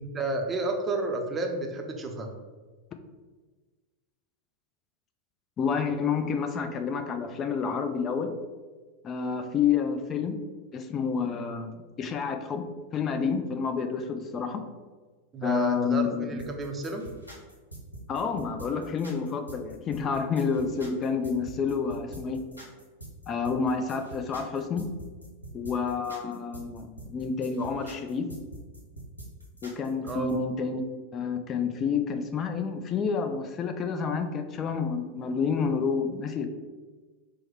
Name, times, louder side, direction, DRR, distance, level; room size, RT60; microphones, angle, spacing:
voice 1, 0.0-2.3 15.3-17.0 30.1-30.3, right 3 dB, 20° right, 3 dB, 0.6 m, -31 dB
voice 2, 5.6-8.3 9.0-10.5 10.7-11.7 12.0-12.7 12.9-14.6 15.4-16.4 18.1-22.4 23.3-24.8 25.5-28.3 29.6-30.8 31.1-36.5, left 6 dB, 25° left, 7 dB, 0.4 m, -29 dB
sound 1, 16.4-30.3, right 1 dB, 85° left, 1.0 m, -45 dB
4.6 x 2.1 x 4.6 m, 1.4 s
figure-of-eight pair, 90°, 0 cm